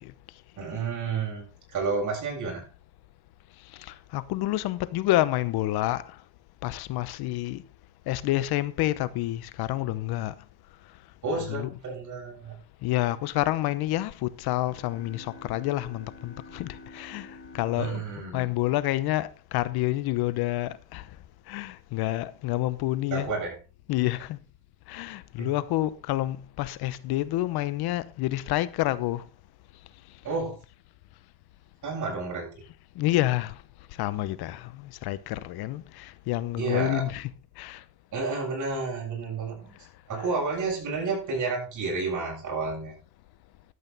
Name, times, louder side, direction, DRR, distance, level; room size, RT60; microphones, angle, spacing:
voice 1, 0.6-2.7 11.2-12.5 17.8-18.5 23.1-23.6 25.4-25.5 30.2-30.6 31.8-32.5 36.6-37.0 38.1-39.8 40.1-43.0, right 4 dB, 55° right, 7.6 m, -31 dB
voice 2, 3.7-6.2 6.6-7.6 8.1-10.3 11.3-11.8 12.8-18.0 18.3-21.1 21.5-23.3 23.9-24.4 24.9-29.2 32.9-33.6 33.9-37.3 37.6-37.8 40.2-40.3, left 16 dB, 85° left, 0.9 m, -28 dB
sound 1, 14.7-19.3, left 3 dB, 35° left, 4.3 m, -49 dB
12.5 x 8.2 x 4.1 m
cardioid pair, 105°, 37 cm